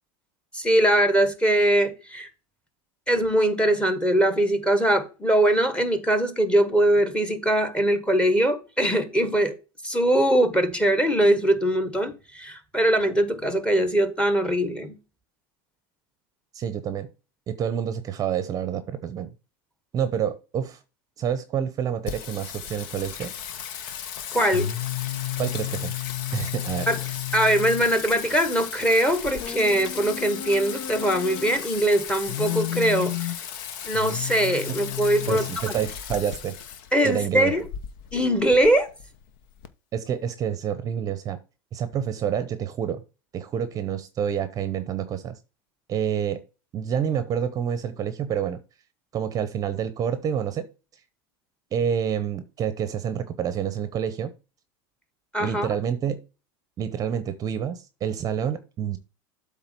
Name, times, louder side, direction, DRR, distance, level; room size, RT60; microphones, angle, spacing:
voice 1, 0.5-2.3 3.1-9.5 9.8-15.0 24.3-24.7 26.9-27.0 27.3-33.3 33.8-35.5 36.9-37.6 38.1-38.9 55.3-55.7, right 1 dB, 10° left, 1.2 m, -22 dB
voice 2, 16.5-17.1 17.5-19.3 19.9-20.8 21.2-23.3 25.4-25.9 26.3-26.9 35.3-36.6 37.0-37.5 39.9-41.4 41.7-43.0 43.3-45.4 45.9-46.4 46.7-48.6 49.1-50.7 51.7-54.3 55.4-56.2 56.8-59.0, right 8 dB, 30° right, 0.7 m, -28 dB
Singing, 22.1-39.7, left 10 dB, 65° left, 1.0 m, -33 dB
8.0 x 3.6 x 6.0 m
supercardioid pair, 135°, 12 cm